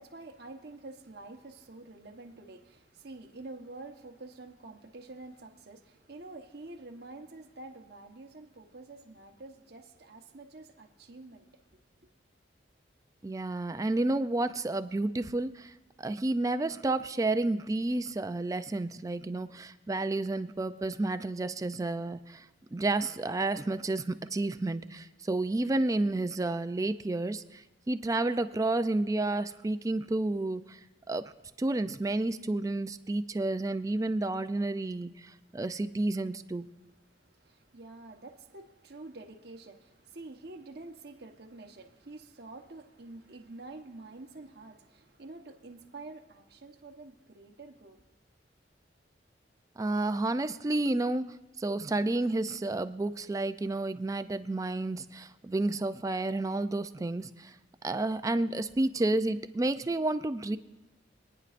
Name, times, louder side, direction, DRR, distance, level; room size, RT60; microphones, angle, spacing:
voice 1, 0.0-11.8 35.5-35.6 37.1-48.0, right 2 dB, 55° right, 2 dB, 1.1 m, -48 dB
voice 2, 13.2-22.5 22.7-30.8 31.1-31.3 31.6-36.6 49.8-57.6 57.8-60.6, right 2 dB, 20° right, 11 dB, 0.3 m, -31 dB
25.0 x 9.8 x 2.5 m, 1.0 s
head